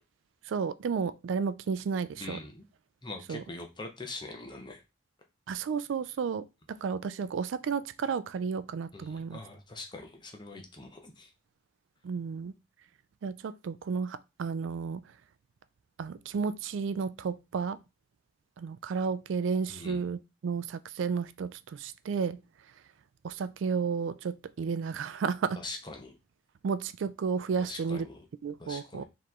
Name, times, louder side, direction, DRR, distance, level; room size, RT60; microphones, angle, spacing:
voice 1, 0.5-2.4 3.3-3.4 5.5-9.4 12.0-12.5 13.2-15.0 16.0-17.8 18.6-22.4 23.2-25.6 26.6-28.1 28.4-29.0, right 5 dB, 70° right, 0.3 m, -32 dB
voice 2, 2.2-2.6 3.0-4.8 8.9-11.3 19.7-20.0 25.6-26.2 27.6-28.3 28.6-29.0, left 2 dB, 20° left, 0.8 m, -43 dB
4.7 x 3.0 x 3.6 m
head